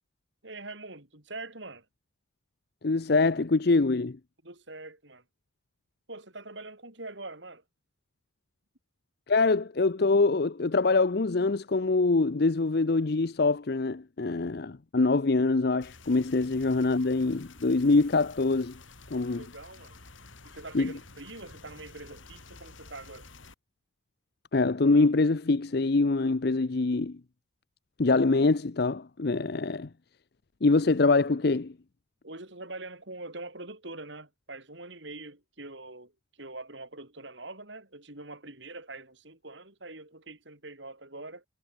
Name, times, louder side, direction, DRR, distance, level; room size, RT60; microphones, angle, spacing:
voice 1, 0.4-1.9 4.4-5.2 6.1-7.6 19.4-20.0 20.4-23.3 32.2-36.1 36.4-41.5, right 2 dB, 65° right, 6.1 m, -44 dB
voice 2, 2.8-4.2 9.3-18.7 19.1-19.4 20.7-20.9 24.5-27.2 28.0-29.9 30.6-31.7, left 3 dB, 55° left, 0.6 m, -24 dB
sound 1, 15.8-23.5, left 3 dB, 80° left, 5.0 m, -51 dB
head